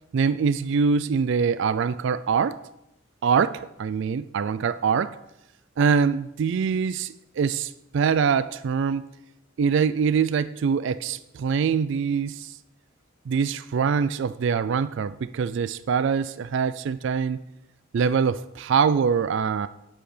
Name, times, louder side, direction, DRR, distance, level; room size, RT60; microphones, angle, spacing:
voice 1, 0.1-2.6 3.2-5.2 5.8-9.0 9.6-12.5 13.3-17.4 17.9-19.7, right 6 dB, 60° right, 14 dB, 0.3 m, -24 dB
8.8 x 7.8 x 4.9 m, 0.86 s
head